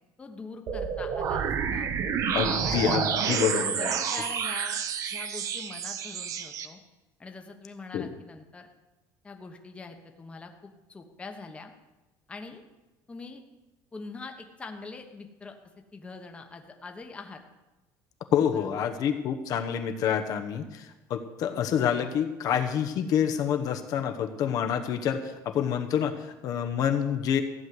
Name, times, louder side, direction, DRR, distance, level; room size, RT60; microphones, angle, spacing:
voice 1, 0.2-1.9 2.6-4.8 5.1-6.8 7.2-8.7 9.2-11.7 12.3-12.6 13.1-13.4 13.9-15.5 15.9-17.4 18.5-18.8, left 3 dB, 15° left, 4 dB, 1.2 m, -43 dB
sound 1, 0.7-6.7, right 7 dB, 40° right, 1.1 m, -29 dB
voice 2, 2.3-4.0 7.9-8.1 18.3-27.4, left 8 dB, 50° left, 5 dB, 1.0 m, -27 dB
15.0 x 6.4 x 9.5 m, 1.1 s
cardioid pair, 160°, 8 cm